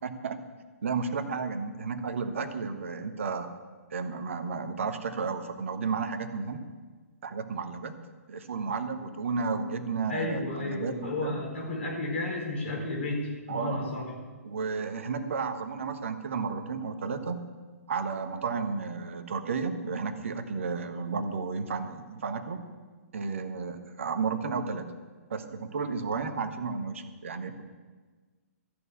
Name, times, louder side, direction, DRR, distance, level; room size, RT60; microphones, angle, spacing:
voice 1, 0.0-0.4 0.8-3.5 3.9-6.6 7.2-7.9 8.3-11.4 13.5-13.9 14.4-17.4 17.9-22.6 23.1-24.9 25.3-27.6, right 5 dB, 55° right, 8 dB, 1.3 m, -32 dB
voice 2, 10.1-14.0, left 2 dB, 50° left, 0 dB, 4.5 m, -32 dB
14.0 x 6.8 x 8.6 m, 1.4 s
figure-of-eight pair, 125°, 8 cm